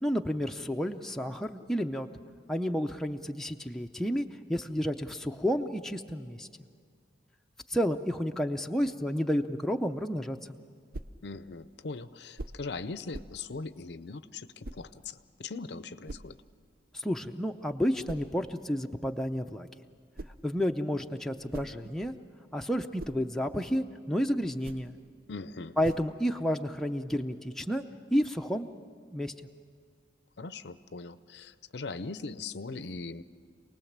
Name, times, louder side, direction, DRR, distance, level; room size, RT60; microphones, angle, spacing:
voice 1, 0.0-2.1 2.5-6.5 7.7-10.6 16.9-19.7 20.4-22.1 22.5-24.9 25.8-27.8 28.1-28.7 29.1-29.3, equal, ahead, 3 dB, 0.5 m, -31 dB
sound 1, 10.9-11.2 12.4-12.7 13.1-13.4 14.6-14.9 16.1-16.4 18.1-18.3 19.9-20.5 21.3-22.2 22.7-23.3 24.5-25.0 25.8-26.2, right 2 dB, 50° right, 0.6 m, -44 dB
voice 2, 11.2-16.4 25.3-25.8 30.4-33.2, left 3 dB, 60° left, 14 dB, 0.6 m, -40 dB
27.5 x 19.5 x 7.4 m, 2.1 s
head